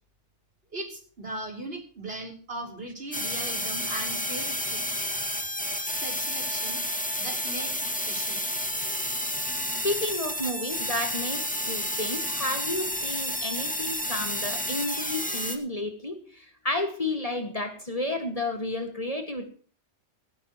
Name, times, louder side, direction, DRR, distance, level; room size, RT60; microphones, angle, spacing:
voice 1, 0.7-4.8 5.8-6.8 7.2-8.5, right 2 dB, 55° right, 2 dB, 4.0 m, -38 dB
sound 1, 3.1-15.6, equal, 5° left, 1.8 m, -30 dB
voice 2, 9.8-19.4, left 2 dB, 30° left, 5 dB, 1.8 m, -31 dB
18.0 x 15.0 x 3.0 m, 0.43 s
omnidirectional pair, 1.2 m